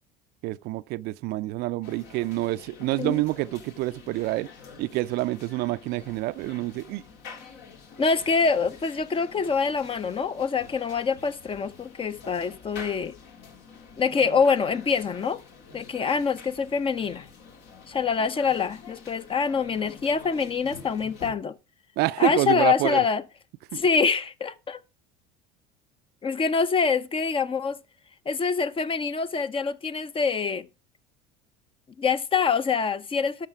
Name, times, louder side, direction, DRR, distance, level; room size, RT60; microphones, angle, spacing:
voice 1, 0.4-4.5 4.8-7.0 22.0-23.0, right 18 dB, 55° right, 0.5 m, -27 dB
sound 1, 1.8-21.3, left 5 dB, 60° left, 2.1 m, -47 dB
voice 2, 8.0-13.1 14.0-15.4 15.7-17.3 17.9-21.5 22.2-23.2 23.7-24.8 26.2-27.8 28.3-30.7 32.0-33.5, left 5 dB, 25° left, 0.7 m, -25 dB
12.5 x 5.7 x 4.8 m
hypercardioid pair, 75°, 20 cm